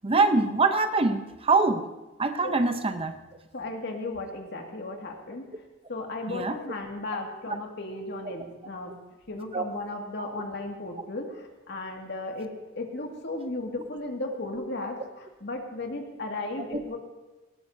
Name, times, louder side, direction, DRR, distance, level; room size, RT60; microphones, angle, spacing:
voice 1, 0.0-1.9 2.2-3.2 6.3-6.6 8.3-8.4 9.5-9.6 16.7-16.8, right 3 dB, 30° right, 8 dB, 0.7 m, -24 dB
voice 2, 3.5-5.5 5.9-8.9 9.3-15.0 15.4-17.0, left 2 dB, 60° left, 1 dB, 2.0 m, -35 dB
18.0 x 17.0 x 2.7 m, 1.1 s
head